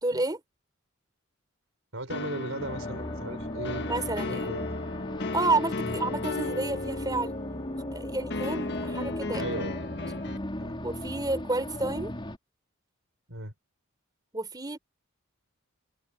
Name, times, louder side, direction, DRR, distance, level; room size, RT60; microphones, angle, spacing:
voice 1, 0.0-0.4 3.8-4.5 5.3-7.4 7.9-9.4 10.8-12.1 14.3-14.8, right 2 dB, 20° right, 4.0 m, -30 dB
voice 2, 1.9-3.9 4.2-4.8 5.8-6.0 9.4-9.9 10.6-10.8 13.3-13.5, right 2 dB, 70° right, 5.2 m, -37 dB
sound 1, 2.1-10.4, left 3 dB, 55° left, 1.4 m, -35 dB
sound 2, 2.6-12.4, left 1 dB, 25° left, 4.1 m, -37 dB
head